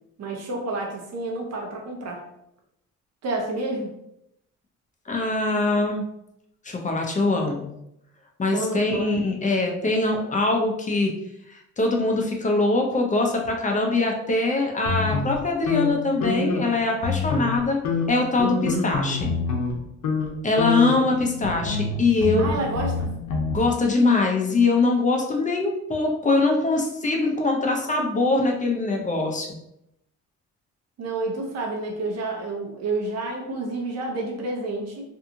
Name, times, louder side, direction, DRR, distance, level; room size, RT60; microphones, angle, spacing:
voice 1, 0.2-2.2 3.2-3.9 8.5-9.1 22.4-23.1 31.0-35.0, right 2 dB, 60° right, 0 dB, 0.8 m, -29 dB
voice 2, 5.1-6.0 6.6-7.7 8.4-11.1 11.5-17.8 18.1-19.3 20.4-22.5 23.5-29.5, left 3 dB, 25° left, 1 dB, 0.6 m, -23 dB
sound 1, 14.8-16.7 17.0-17.6 17.8-19.7 20.0-20.3 20.6-23.6, left 4 dB, 80° left, 0.8 m, -27 dB
2.7 x 2.4 x 2.7 m, 0.81 s
cardioid pair, 90°, 30 cm